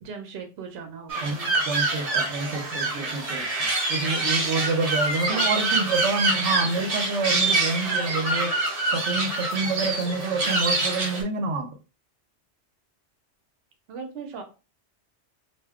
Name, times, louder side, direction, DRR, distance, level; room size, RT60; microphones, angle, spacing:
voice 1, 0.0-1.5 5.3-5.7 13.9-14.4, right 5 dB, 65° right, 5 dB, 0.9 m, -38 dB
sound 1, 1.1-11.2, right 2 dB, 40° right, 0.7 m, -26 dB
voice 2, 1.6-8.6 8.8-11.8, right 4 dB, 90° right, 5 dB, 0.9 m, -28 dB
2.4 x 2.2 x 3.4 m, 0.32 s
omnidirectional pair, 1.2 m